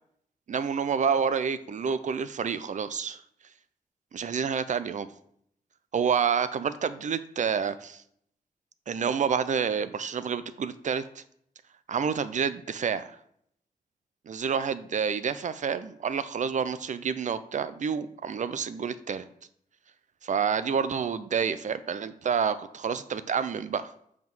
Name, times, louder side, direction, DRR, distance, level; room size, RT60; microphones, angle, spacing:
voice 1, 0.5-3.2 4.1-5.1 5.9-8.0 8.9-11.2 11.9-13.1 14.3-19.2 20.2-23.9, right 6 dB, 50° right, 13 dB, 0.5 m, -28 dB
7.4 x 3.6 x 6.1 m, 0.69 s
wide cardioid pair, 125°, 15 cm